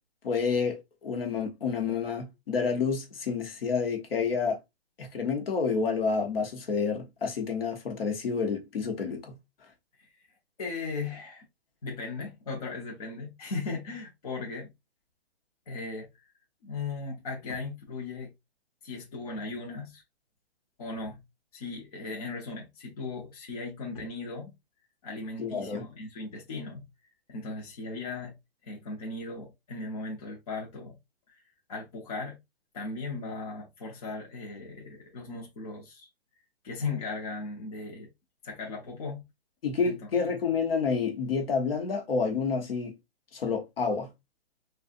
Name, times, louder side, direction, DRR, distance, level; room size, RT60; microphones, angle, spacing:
voice 1, 0.2-4.6 5.0-9.4 25.4-25.8 39.6-42.9 43.3-44.1, left 5 dB, 60° left, 1.1 m, -29 dB
voice 2, 10.6-11.4 11.8-14.7 15.7-16.1 16.6-18.3 18.8-20.0 20.8-21.2 21.5-24.5 25.0-26.8 27.3-28.4 28.6-31.0 31.3-31.4 31.7-32.4 32.7-36.1 36.6-38.1 38.4-39.2 39.8-40.0, left 3 dB, 35° left, 0.8 m, -37 dB
3.7 x 2.4 x 2.5 m
hypercardioid pair, 170°, 33 cm